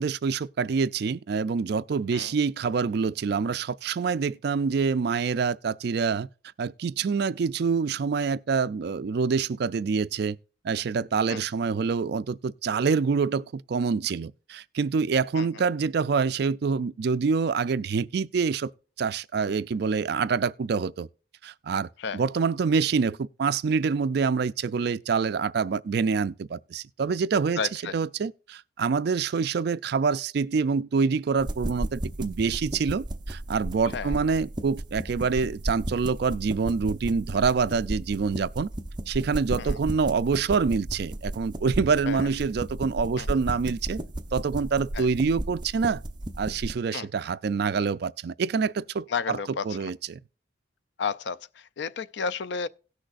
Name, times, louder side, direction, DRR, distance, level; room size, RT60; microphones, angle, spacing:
voice 1, 0.0-6.3 6.6-10.4 10.6-18.7 19.0-21.1 21.4-27.6 27.9-38.7 39.1-44.0 44.3-46.0 46.4-49.4 49.7-50.2, right 5 dB, 55° right, 0.3 m, -26 dB
voice 2, 27.6-28.0 33.9-34.2 39.6-39.8 42.1-42.3 43.2-43.3 44.9-45.1 46.9-47.1 49.1-49.9 51.0-52.7, left 5 dB, 60° left, 0.4 m, -32 dB
sound 1, 31.4-46.8, right 1 dB, 20° right, 0.8 m, -34 dB
17.5 x 6.3 x 2.5 m
head